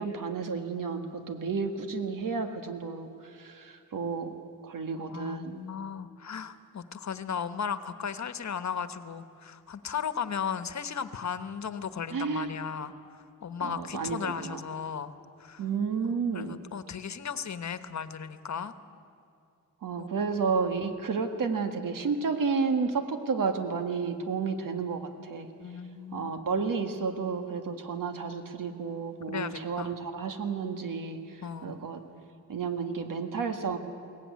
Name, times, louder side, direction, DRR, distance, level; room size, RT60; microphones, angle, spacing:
voice 1, 0.0-4.3 4.6-5.6 12.1-12.5 13.6-14.6 15.6-16.6 19.8-25.5 26.1-32.0 32.5-33.8, right 5 dB, 85° right, 7 dB, 1.8 m, -31 dB
voice 2, 5.1-15.1 15.4-15.6 16.1-18.7 20.0-20.1 25.6-26.3 29.3-29.9 31.4-31.8, left 7 dB, 60° left, 12 dB, 1.1 m, -36 dB
22.5 x 18.0 x 9.5 m, 2.5 s
wide cardioid pair, 105°, 32 cm